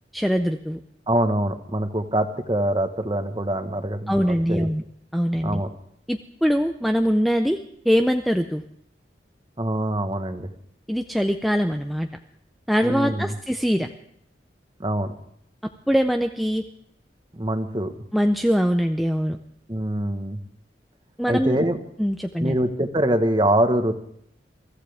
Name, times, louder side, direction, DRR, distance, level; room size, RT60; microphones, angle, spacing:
voice 1, 0.1-0.8 4.1-4.8 5.1-5.6 6.1-7.6 7.9-8.6 10.9-12.1 12.7-13.9 15.9-16.6 18.1-19.4 21.2-21.6 22.0-22.6, equal, ahead, 4 dB, 0.5 m, -22 dB
voice 2, 1.1-4.7 5.4-5.7 9.6-10.5 12.8-13.3 14.8-15.1 17.3-17.9 19.7-20.4 21.3-21.8 22.4-23.9, right 1 dB, 25° right, 7 dB, 1.2 m, -24 dB
23.5 x 14.5 x 3.5 m, 0.69 s
head